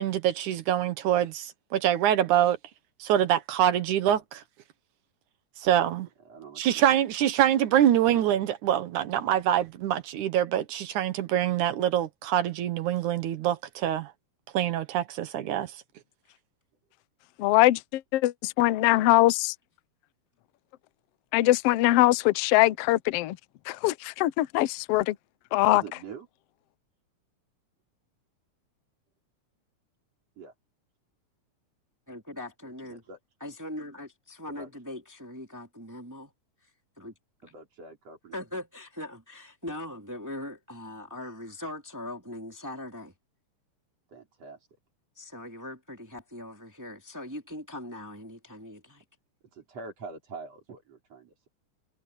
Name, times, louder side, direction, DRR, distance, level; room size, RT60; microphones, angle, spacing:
voice 1, 0.0-2.6 3.0-4.4 5.6-6.1 6.6-14.1 14.5-15.7, right 11 dB, 80° right, 2.6 m, -25 dB
voice 2, 6.3-6.9 25.7-26.3 30.4-30.5 32.8-33.2 34.5-34.7 37.4-38.4 44.1-44.7 49.5-51.5, right 4 dB, 55° right, 5.3 m, -45 dB
voice 3, 17.4-17.8 18.1-18.3 18.6-19.5 21.3-23.4 23.7-25.2 25.5-25.8, left 17 dB, 80° left, 1.4 m, -22 dB
voice 4, 32.1-33.0 33.4-36.3 37.0-37.1 37.4-37.6 38.3-43.1 45.2-49.0, left 1 dB, 5° right, 2.4 m, -40 dB
omnidirectional pair, 3.5 m